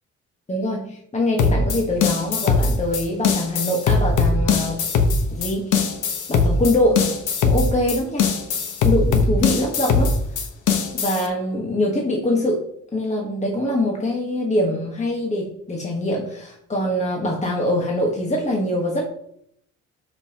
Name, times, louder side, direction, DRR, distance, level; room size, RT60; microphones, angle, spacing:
voice 1, 0.5-4.8 5.3-5.9 6.3-7.1 7.4-8.3 8.8-10.2 10.9-12.6 12.9-19.0, left 1 dB, 25° left, -1 dB, 1.5 m, -23 dB
sound 1, 1.4-11.3, left 4 dB, 80° left, 1.3 m, -20 dB
12.5 x 5.5 x 3.0 m, 0.74 s
cardioid pair, 90°, 30 cm